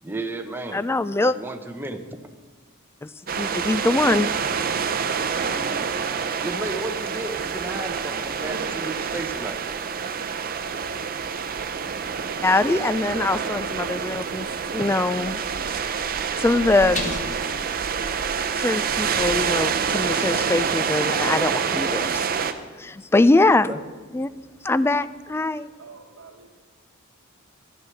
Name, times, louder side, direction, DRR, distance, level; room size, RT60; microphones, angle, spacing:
voice 1, 0.0-0.8 1.2-2.0 6.4-9.6 21.2-21.3 23.7-23.8, right 2 dB, 10° right, 5 dB, 0.9 m, -33 dB
voice 2, 0.7-1.4 3.0-3.1 3.4-4.3 12.4-16.0 16.4-17.1 18.6-22.1 22.8-23.7 24.1-24.3 24.6-25.7, left 2 dB, 10° left, 16 dB, 0.3 m, -22 dB
sound 1, 3.3-22.5, right 6 dB, 45° right, 0.7 m, -27 dB
sound 2, 6.8-25.4, left 3 dB, 35° left, 1.4 m, -44 dB
voice 3, 25.4-26.6, right 4 dB, 75° right, -2 dB, 1.1 m, -48 dB
12.5 x 7.9 x 6.9 m, 1.4 s
head